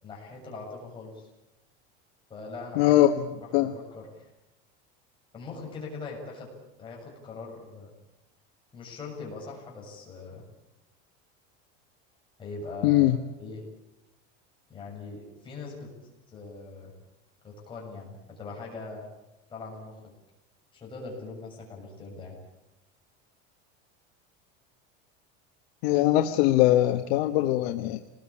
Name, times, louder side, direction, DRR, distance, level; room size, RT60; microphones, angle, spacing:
voice 1, 0.0-1.3 2.3-2.9 3.4-4.3 5.3-6.5 6.8-7.9 8.7-10.4 12.4-13.6 14.7-15.9 16.3-16.9 17.4-19.0 19.5-20.0 20.7-22.4, left 3 dB, 15° left, -2 dB, 7.1 m, -41 dB
voice 2, 2.8-3.1 3.5-3.7 12.8-13.2 25.8-28.0, left 14 dB, 65° left, 6 dB, 1.3 m, -21 dB
27.0 x 20.0 x 8.6 m, 0.94 s
cardioid pair, 175°, 33 cm